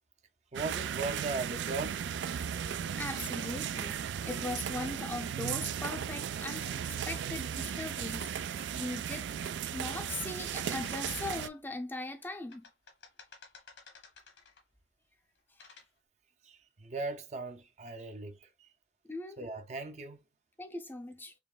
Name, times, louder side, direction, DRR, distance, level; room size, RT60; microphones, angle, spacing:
voice 1, 0.5-2.0 16.4-18.7 19.4-20.2, right 3 dB, 40° right, 0.5 m, -38 dB
sound 1, 0.5-11.5, right 8 dB, 85° right, 0.4 m, -36 dB
voice 2, 3.0-6.8 7.1-9.3 9.7-12.7 19.1-19.4 20.6-21.3, left 2 dB, 10° left, 0.5 m, -40 dB
sound 2, 6.4-7.5 8.6-11.8 12.2-14.8 15.4-15.9, left 5 dB, 85° left, 1.6 m, -54 dB
5.1 x 3.1 x 2.3 m
head